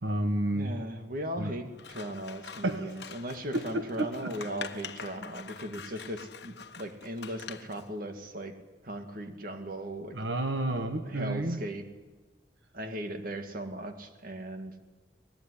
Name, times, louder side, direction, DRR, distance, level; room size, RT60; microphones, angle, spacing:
voice 1, 0.0-0.7 1.4-1.5 2.6-2.9 3.5-4.3 10.1-11.6, right 1 dB, 75° right, 7 dB, 1.3 m, -30 dB
voice 2, 0.5-8.5 8.8-10.2 10.7-11.8 12.7-14.7, right 1 dB, 50° right, 6 dB, 2.3 m, -38 dB
Scissors, 1.7-7.9, left 6 dB, 65° left, 1.3 m, -45 dB
23.5 x 19.5 x 10.0 m, 1.3 s
head